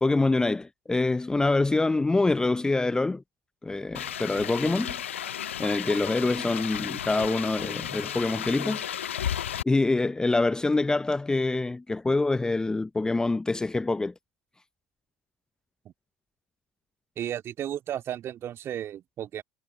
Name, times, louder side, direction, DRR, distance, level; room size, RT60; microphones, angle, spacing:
voice 1, 0.0-3.2 3.6-5.0 5.6-8.8 9.6-14.1, left 3 dB, 10° left, 0.6 m, -25 dB
sound 1, 3.9-9.6, left 10 dB, 75° left, 0.6 m, -33 dB
voice 2, 17.2-19.4, right 11 dB, 40° right, 2.1 m, -34 dB
figure-of-eight pair, 75°, 7 cm